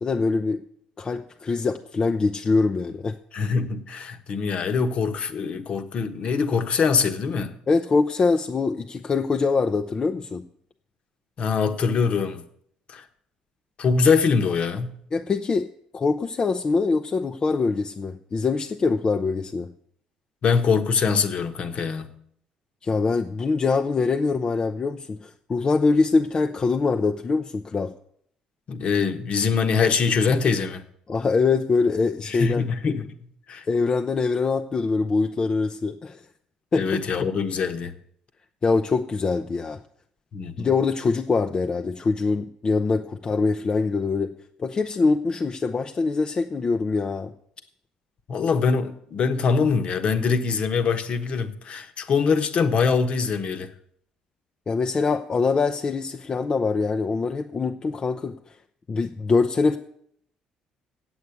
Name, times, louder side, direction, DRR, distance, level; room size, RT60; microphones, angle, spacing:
voice 1, 0.0-0.6 1.0-3.2 7.7-10.4 15.1-15.7 15.9-19.7 22.8-27.9 31.1-32.6 33.7-36.2 36.7-36.9 38.6-39.8 40.6-44.3 44.6-47.3 54.7-58.4 58.9-59.8, left 4 dB, 35° left, 0.6 m, -23 dB
voice 2, 3.3-7.5 11.4-12.4 12.9-13.0 13.8-15.0 20.4-22.1 28.7-30.8 32.2-33.6 36.7-37.9 40.3-40.7 48.3-53.7, left 5 dB, 55° left, 1.2 m, -23 dB
8.1 x 8.1 x 8.4 m
cardioid pair, 85°, 2 cm